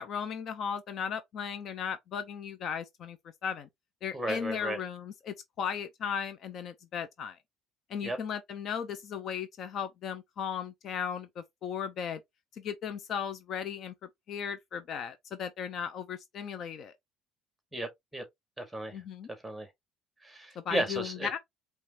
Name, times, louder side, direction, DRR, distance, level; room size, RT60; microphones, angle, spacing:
voice 1, 0.0-3.2 3.4-3.7 4.0-7.4 7.9-12.2 12.5-13.9 14.3-16.9 18.9-19.3 20.6-21.4, left 7 dB, 50° left, 0.7 m, -36 dB
voice 2, 4.1-4.8 8.0-8.2 17.7-18.2 18.6-19.0 19.4-19.7 20.2-21.3, right 1 dB, 5° right, 1.9 m, -34 dB
4.9 x 3.2 x 2.9 m
cardioid pair, 120°, 0 cm